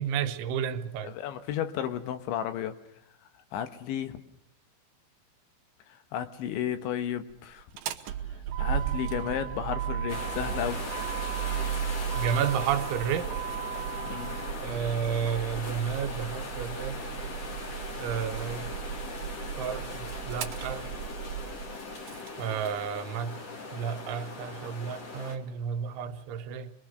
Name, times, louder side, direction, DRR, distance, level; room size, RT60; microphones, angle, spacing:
voice 1, 0.0-1.2 12.1-13.3 14.6-17.0 18.0-18.7 19.6-20.9 22.4-23.4 23.7-26.7, right 8 dB, 85° right, 8 dB, 3.4 m, -31 dB
voice 2, 1.0-2.8 3.5-4.2 5.9-7.6 8.6-10.9 14.1-14.4, left 10 dB, 80° left, 9 dB, 3.6 m, -33 dB
Motor vehicle (road), 7.6-22.3, right 9 dB, 70° right, 2.4 m, -35 dB
sound 1, 10.1-25.4, left 3 dB, 40° left, 3.4 m, -40 dB
27.5 x 22.0 x 6.6 m, 0.71 s
omnidirectional pair, 5.3 m